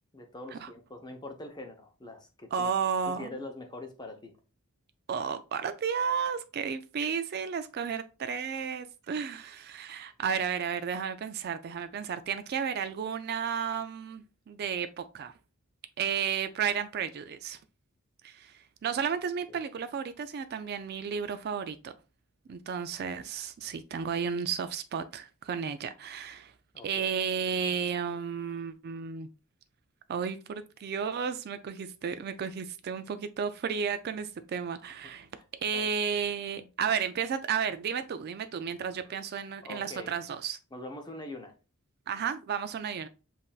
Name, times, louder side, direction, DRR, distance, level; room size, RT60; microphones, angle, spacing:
voice 1, 0.1-2.7 3.1-4.3 19.5-19.6 26.7-27.1 35.4-35.5 35.7-35.9 39.6-40.1 40.7-41.5, left 2 dB, 20° left, 0.8 m, -43 dB
voice 2, 2.5-3.4 5.1-15.3 16.0-17.6 18.2-21.9 22.5-26.5 26.8-29.3 30.1-35.3 35.6-40.6 42.1-43.1, right 7 dB, 45° right, 0.3 m, -33 dB
7.3 x 2.6 x 2.3 m
head